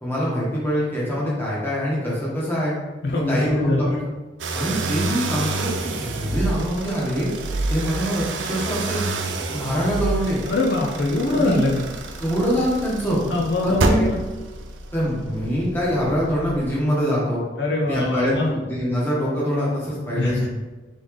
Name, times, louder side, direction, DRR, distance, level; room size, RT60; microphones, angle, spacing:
voice 1, 0.0-2.7 3.1-4.0 4.5-7.3 7.7-9.0 9.5-10.4 11.4-11.7 12.2-13.2 13.6-14.1 14.9-17.4 17.8-20.5, equal, 10° left, -7 dB, 1.2 m, -24 dB
voice 2, 3.0-3.9 10.4-11.8 13.3-14.2 17.6-18.5 20.1-20.5, left 2 dB, 65° left, -1 dB, 0.5 m, -23 dB
sound 1, 4.4-16.8, right 2 dB, 85° right, 0.4 m, -28 dB
3.7 x 3.2 x 3.7 m, 1.2 s
head